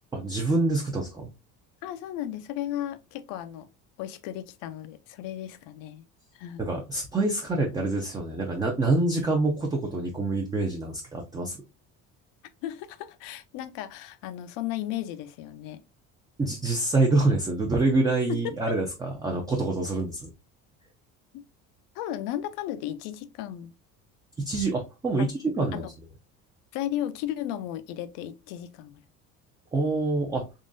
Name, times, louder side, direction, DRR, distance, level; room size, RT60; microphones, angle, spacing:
voice 1, 0.1-1.3 6.6-11.6 16.4-20.3 24.4-25.8 29.7-30.5, right 2 dB, 10° right, 0.4 m, -26 dB
voice 2, 1.8-3.7 4.0-6.0 6.3-6.6 12.6-15.8 18.3-18.7 21.3-21.4 21.9-23.7 25.2-25.3 25.7-25.9 26.7-29.0, left 12 dB, 80° left, 0.6 m, -35 dB
3.7 x 3.1 x 2.5 m
cardioid pair, 150°, 32 cm